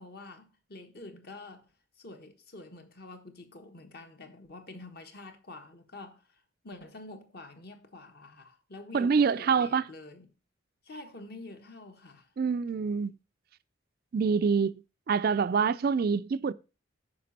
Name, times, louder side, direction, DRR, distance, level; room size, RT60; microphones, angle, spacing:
voice 1, 0.0-1.7 2.0-10.3 10.8-12.3, left 2 dB, 50° left, 1.4 m, -47 dB
voice 2, 8.9-9.9 12.4-13.1 14.1-14.8 15.1-16.5, right 5 dB, 50° right, 0.3 m, -26 dB
9.4 x 5.9 x 4.1 m
head